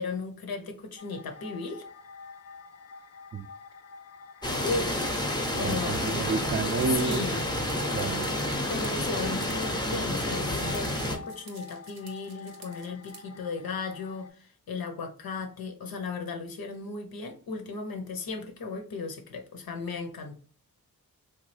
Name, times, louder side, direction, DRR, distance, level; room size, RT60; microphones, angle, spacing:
voice 1, 0.0-1.8 4.6-6.0 6.9-7.4 8.7-20.4, left 4 dB, 75° left, 0.7 m, -36 dB
sound 1, 1.0-14.3, left 4 dB, 45° left, 0.4 m, -48 dB
sound 2, 4.4-11.2, left 1 dB, 10° left, 0.7 m, -29 dB
voice 2, 5.6-7.3 7.9-8.3, right 4 dB, 35° right, 0.4 m, -30 dB
sound 3, 6.7-13.2, right 4 dB, 85° right, 0.8 m, -49 dB
3.1 x 2.2 x 3.2 m
cardioid pair, 50°, 36 cm